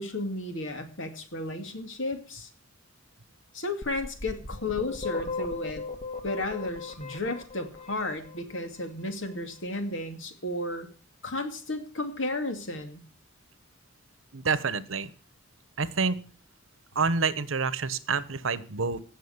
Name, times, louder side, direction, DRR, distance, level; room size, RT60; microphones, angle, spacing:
voice 1, 0.0-2.5 3.5-5.8 6.2-10.9 11.2-13.0, left 2 dB, 70° left, 7 dB, 2.4 m, -33 dB
sound 1, 3.8-8.7, left 4 dB, 40° left, 1.8 m, -36 dB
voice 2, 14.3-15.1 15.8-16.2 16.9-19.0, right 4 dB, 85° right, 16 dB, 1.1 m, -28 dB
16.5 x 6.5 x 8.0 m, 0.40 s
head